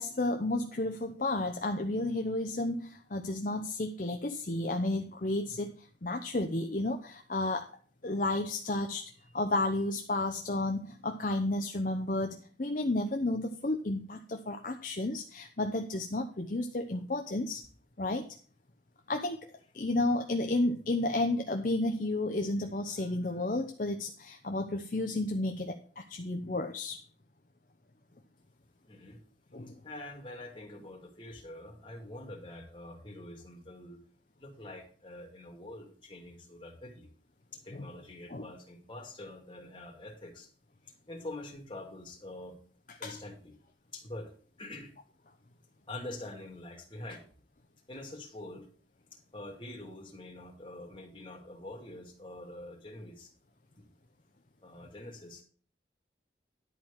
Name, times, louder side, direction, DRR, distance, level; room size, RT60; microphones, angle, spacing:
voice 1, 0.0-7.7 8.0-17.6 18.0-18.3 19.1-19.4 19.7-27.0 29.5-29.8 37.7-37.9 38.3-38.4 43.0-43.2, left 2 dB, 45° left, 5 dB, 0.7 m, -32 dB
voice 2, 28.9-29.2 29.8-34.0 34.4-37.1 37.5-40.5 40.8-42.6 43.0-43.6 43.9-44.3 44.6-44.9 45.9-47.2 47.9-48.7 49.3-53.3 53.7-53.9 54.6-55.4, left 1 dB, 25° left, 1 dB, 2.4 m, -45 dB
11.0 x 4.7 x 7.2 m, 0.43 s
head